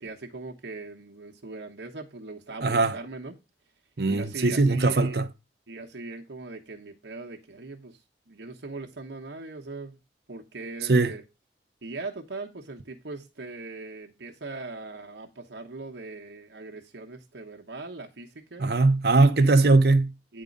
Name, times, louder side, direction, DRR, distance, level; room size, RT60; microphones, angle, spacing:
voice 1, 0.0-3.3 4.1-5.2 5.7-8.0 8.3-10.0 10.3-11.2 11.8-18.7 19.4-19.5 20.3-20.4, right 3 dB, 90° right, 1.1 m, -40 dB
voice 2, 2.6-3.0 4.0-5.2 10.9-11.1 18.6-20.1, right 3 dB, 65° right, 0.7 m, -20 dB
9.5 x 3.7 x 5.2 m
head